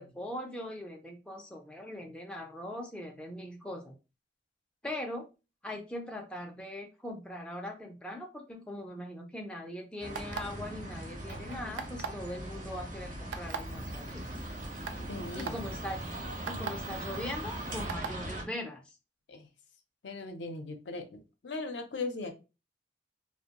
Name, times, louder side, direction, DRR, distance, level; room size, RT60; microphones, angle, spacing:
voice 1, 0.0-4.0 4.8-5.3 5.6-14.2 15.4-16.0 16.5-18.9, left 1 dB, 5° left, 1 dB, 0.3 m, -41 dB
sound 1, 10.0-18.4, right 1 dB, 45° right, 0.6 m, -40 dB
sound 2, 10.1-10.6 11.8-12.2 13.3-13.6 14.3-14.4 14.8-15.0 15.4-15.5 16.5-16.7 17.9-18.1, right 6 dB, 90° right, 0.4 m, -36 dB
sound 3, 11.1-18.0, right 4 dB, 65° right, 0.9 m, -52 dB
voice 2, 15.0-15.6 19.3-19.5 20.0-22.3, left 3 dB, 80° left, 6 dB, 0.5 m, -39 dB
2.5 x 2.1 x 2.8 m, 0.29 s
head